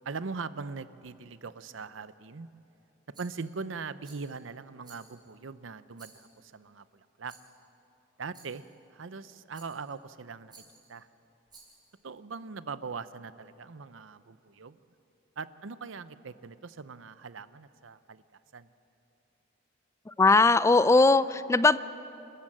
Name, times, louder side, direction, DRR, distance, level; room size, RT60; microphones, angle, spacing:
voice 1, 0.0-2.5 3.2-7.4 8.2-8.6 8.9-10.5 10.9-11.1 12.0-14.8 15.4-18.2 18.5-18.7, right 4 dB, 75° right, 14 dB, 0.7 m, -41 dB
Rattle, 3.1-3.6 4.0-4.4 4.8-5.4 5.9-6.5 7.3-7.6 8.3-8.7 9.5-10.0 10.5-10.9 11.5-11.9, right 4 dB, 20° right, 5.2 m, -56 dB
voice 2, 20.1-21.8, left 3 dB, 15° left, 15 dB, 0.4 m, -20 dB
28.5 x 14.0 x 7.5 m, 3.0 s
head